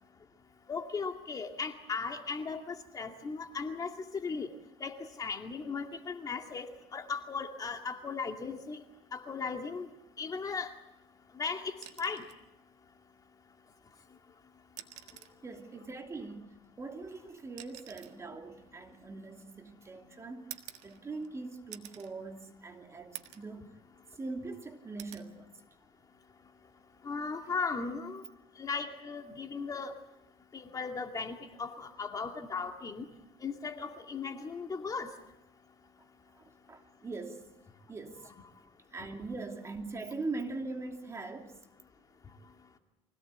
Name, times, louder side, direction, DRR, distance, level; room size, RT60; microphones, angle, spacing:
voice 1, 0.7-4.5 4.8-8.8 9.1-9.9 10.2-10.7 11.3-11.7 12.0-12.2 27.0-28.2 28.6-29.9 30.5-33.1 33.4-35.1, left 5 dB, 30° left, 2.4 m, -37 dB
sound 1, 11.7-12.4 13.9-14.0 14.6-15.4 16.6-19.7 20.5-21.3 21.7-22.1 22.6-22.7 23.1-23.5 24.0-24.6 25.0-25.3 26.8-27.0, right 12 dB, 70° right, 1.7 m, -49 dB
voice 2, 15.4-20.5 20.8-23.7 24.1-25.5 36.3-37.4 37.9-38.3 38.9-41.6, right 3 dB, 25° right, 2.8 m, -41 dB
25.0 x 17.0 x 8.2 m
cardioid pair, 105°, 12 cm